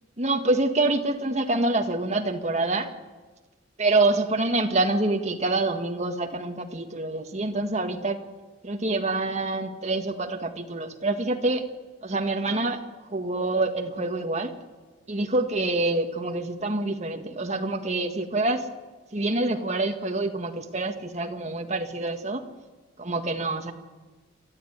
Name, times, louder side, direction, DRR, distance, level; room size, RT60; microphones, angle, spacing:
voice 1, 0.2-2.9 3.8-8.2 8.6-11.7 12.0-12.8 13.1-14.5 15.1-18.7 19.1-22.4 23.0-23.7, right 2 dB, 40° right, 4 dB, 1.8 m, -26 dB
29.0 x 13.0 x 9.5 m, 1.3 s
head